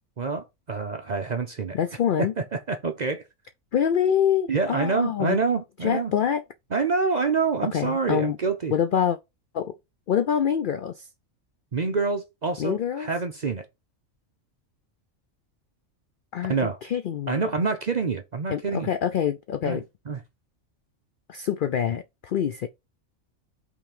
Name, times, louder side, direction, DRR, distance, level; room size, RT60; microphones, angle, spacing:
voice 1, 0.2-1.8 2.2-3.2 4.5-6.1 6.7-8.7 11.7-13.7 16.5-16.8 17.3-18.9 19.6-20.2, right 4 dB, 50° right, 0.5 m, -27 dB
voice 2, 1.7-2.3 3.7-5.4 5.8-6.4 7.7-8.4 8.7-9.2 9.5-9.7 10.1-11.1 12.6-13.1 16.3-16.5 16.9-17.5 18.5-19.8 21.3-22.7, left 8 dB, 75° left, 0.4 m, -25 dB
5.7 x 3.9 x 5.1 m
omnidirectional pair, 1.4 m